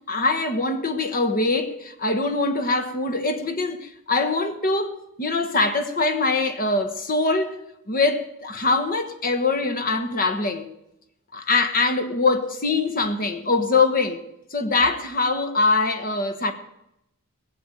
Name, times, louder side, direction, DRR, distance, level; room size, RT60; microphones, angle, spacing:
voice 1, 0.1-7.6 7.9-10.6 11.3-14.2 14.5-16.5, left 3 dB, 40° left, 1.3 m, -23 dB
17.5 x 7.6 x 9.1 m
head